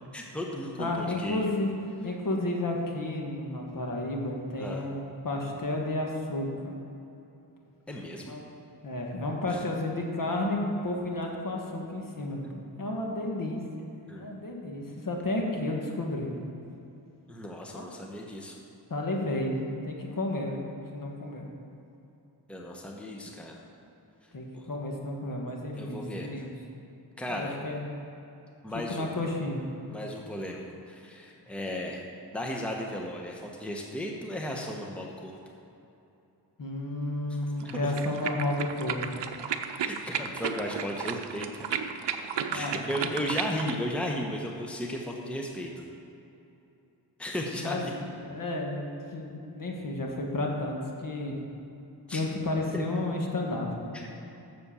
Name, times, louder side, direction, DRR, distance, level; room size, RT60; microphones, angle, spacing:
voice 1, 0.1-1.5 4.6-4.8 7.9-8.3 9.5-9.6 14.1-14.3 17.3-18.6 22.5-23.6 24.5-24.6 25.8-26.3 27.2-27.5 28.6-29.1 29.9-32.0 32.3-35.4 37.6-37.9 39.9-41.5 42.5-45.9 47.2-47.9 52.1-52.2 52.7-52.9 53.9-54.2, equal, 5° left, 0 dB, 1.1 m, -35 dB
voice 2, 0.8-1.7 2.0-6.7 8.2-8.5 8.8-12.4 12.8-13.9 14.1-16.5 17.7-17.9 18.9-19.6 19.8-20.6 20.9-21.5 24.3-26.5 27.3-27.8 28.7-29.6 36.6-39.2 42.5-43.3 47.6-47.8 48.1-51.4 52.1-54.0, left 2 dB, 50° left, 0 dB, 1.7 m, -32 dB
sound 1, 37.6-43.8, right 7 dB, 75° right, 0.7 m, -34 dB
7.6 x 7.1 x 7.0 m, 2.9 s
cardioid pair, 75°, 43 cm